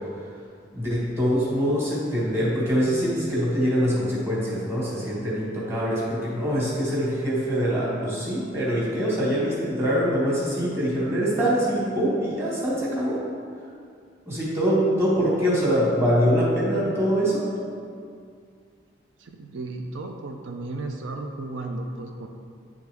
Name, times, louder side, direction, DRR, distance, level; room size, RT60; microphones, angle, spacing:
voice 1, 0.7-13.2 14.2-17.5, equal, 15° right, -6 dB, 1.5 m, -24 dB
voice 2, 19.2-22.3, right 2 dB, 80° right, 3 dB, 0.5 m, -34 dB
10.5 x 3.5 x 3.4 m, 2.2 s
head